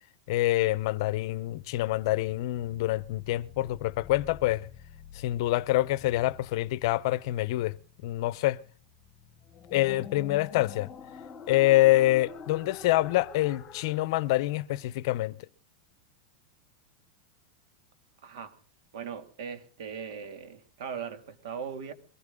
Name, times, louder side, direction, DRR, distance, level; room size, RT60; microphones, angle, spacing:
voice 1, 0.3-4.7 5.1-7.8 8.0-8.6 9.7-10.9 11.5-15.4, left 16 dB, 55° left, 0.7 m, -26 dB
sound 1, 1.0-14.1, left 6 dB, 20° left, 2.4 m, -48 dB
voice 2, 18.2-18.5 18.9-21.9, right 7 dB, 70° right, 2.5 m, -39 dB
22.5 x 15.0 x 3.7 m
supercardioid pair, 150°, 3 cm